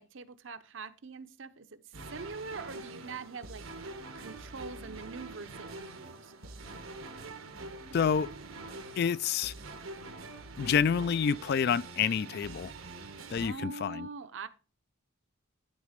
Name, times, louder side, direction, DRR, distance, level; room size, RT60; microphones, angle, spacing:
voice 1, 0.0-1.8 2.1-6.3 13.4-14.5, right 4 dB, 65° right, 0.8 m, -43 dB
sound 1, 1.9-13.5, right 2 dB, 90° right, 1.4 m, -45 dB
voice 2, 7.9-8.3 9.0-9.5 10.6-12.7 13.3-14.1, left 7 dB, 50° left, 0.3 m, -28 dB
11.5 x 4.1 x 5.0 m
head